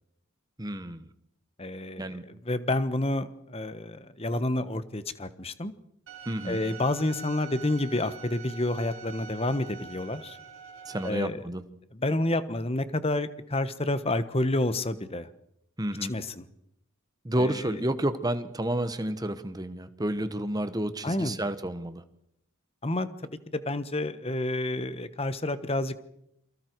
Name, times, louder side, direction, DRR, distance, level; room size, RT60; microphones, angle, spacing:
voice 1, 0.6-1.1 2.0-2.3 6.3-6.6 10.8-11.6 15.8-16.1 17.2-22.0, right 1 dB, 15° right, 11 dB, 1.2 m, -30 dB
voice 2, 1.6-5.7 6.4-10.4 11.0-11.4 11.9-15.3 16.1-16.4 17.4-17.7 21.0-21.4 22.8-26.0, left 1 dB, 25° left, 13 dB, 1.2 m, -29 dB
Bowed string instrument, 6.1-11.1, right 7 dB, 60° right, 4.4 m, -45 dB
29.0 x 23.5 x 4.7 m, 0.77 s
head